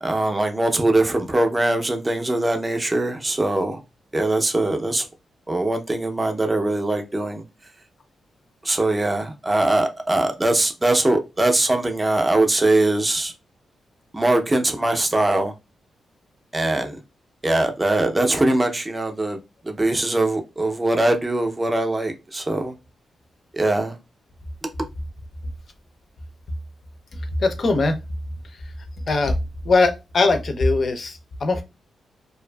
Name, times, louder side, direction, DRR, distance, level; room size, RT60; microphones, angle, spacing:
voice 1, 0.0-3.8 4.1-5.1 5.5-7.4 8.6-13.3 14.1-15.5 16.5-17.0 17.4-22.7 23.5-24.0 24.6-24.7, right 2 dB, 20° right, 0.5 m, -21 dB
voice 2, 27.4-28.0 29.1-29.4 29.6-31.6, left 3 dB, 50° left, 0.5 m, -20 dB
2.5 x 2.4 x 2.2 m
cardioid pair, 115°, 0 cm